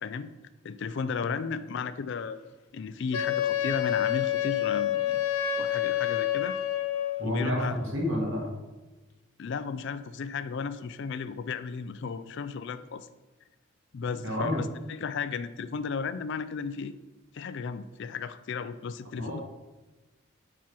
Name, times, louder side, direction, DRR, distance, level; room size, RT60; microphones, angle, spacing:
voice 1, 0.6-2.4 2.7-5.2 5.6-6.6 7.2-7.8 9.4-13.1 13.9-16.9 17.3-19.4, left 5 dB, 55° left, 13 dB, 0.3 m, -34 dB
Wind instrument woodwind instrument, 3.1-7.3, left 11 dB, 90° left, 0.7 m, -28 dB
voice 2, 7.2-8.5 14.2-14.6 19.2-19.4, left 1 dB, 65° right, -1 dB, 1.9 m, -29 dB
7.4 x 5.5 x 4.5 m, 1.1 s
head